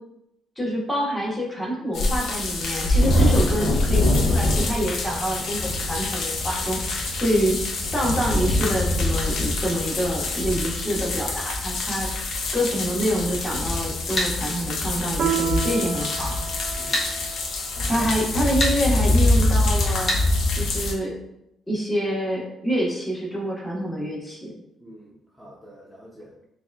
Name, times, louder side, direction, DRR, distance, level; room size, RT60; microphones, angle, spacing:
voice 1, 0.6-16.3 17.9-20.1 20.6-21.1 21.7-24.5, equal, 15° left, -4 dB, 1.4 m, -27 dB
sound 1, 1.9-20.9, left 2 dB, 75° left, 0.6 m, -24 dB
sound 2, 14.2-14.3 16.9-17.1 18.6-18.8 20.1-20.2, equal, 40° left, 1.4 m, -23 dB
Piano, 15.2-20.1, right 8 dB, 55° right, 0.5 m, -33 dB
voice 2, 16.8-17.2 17.7-18.1 24.8-26.3, equal, ahead, -7 dB, 0.9 m, -44 dB
5.9 x 2.5 x 2.3 m, 0.82 s
cardioid pair, 90°, 0 cm